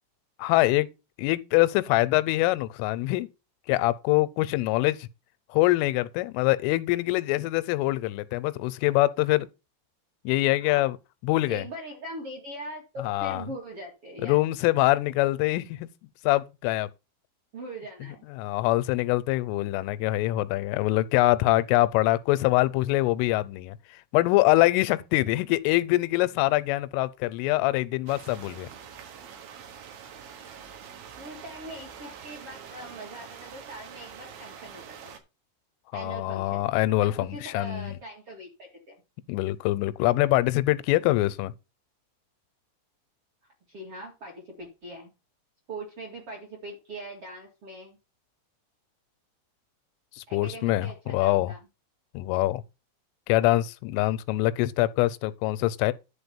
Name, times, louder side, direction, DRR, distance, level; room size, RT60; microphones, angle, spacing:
voice 1, 0.4-0.9 1.2-3.3 3.7-5.1 5.5-9.5 10.2-11.0 11.2-11.6 13.0-13.4 14.2-15.9 16.2-16.9 18.3-28.7 35.9-38.0 39.3-41.5 50.2-51.5 52.1-52.6 53.3-55.9, left 18 dB, 90° left, 3.2 m, -24 dB
voice 2, 11.5-14.4 17.5-18.3 31.2-35.2 35.9-36.7 37.0-39.0 43.7-45.1 45.7-48.0 50.3-51.6, right 1 dB, 40° right, 2.1 m, -41 dB
sound 1, 28.1-35.2, right 7 dB, 75° right, 4.1 m, -45 dB
11.0 x 4.2 x 7.1 m
omnidirectional pair, 5.7 m